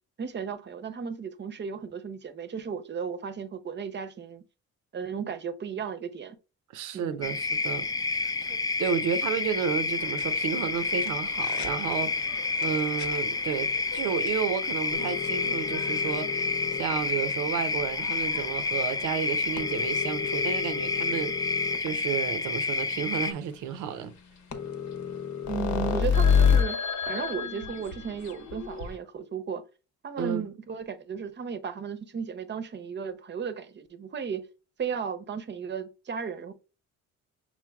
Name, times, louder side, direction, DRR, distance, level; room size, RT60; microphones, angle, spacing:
voice 1, 0.2-4.4 4.9-6.4 6.9-7.3 25.5-29.6 30.0-34.5 34.8-36.5, right 6 dB, 35° right, 0.7 m, -35 dB
voice 2, 6.7-7.9 8.2-24.1 30.2-30.5, right 7 dB, 90° right, 0.7 m, -32 dB
sound 1, 7.2-23.3, left 4 dB, 15° left, 0.3 m, -29 dB
sound 2, 10.0-21.9 22.5-22.6 22.8-22.9 23.2-23.3 24.2-24.3 24.5-29.0, left 7 dB, 65° left, 1.0 m, -31 dB
5.9 x 3.8 x 2.3 m
cardioid pair, 90°, 30 cm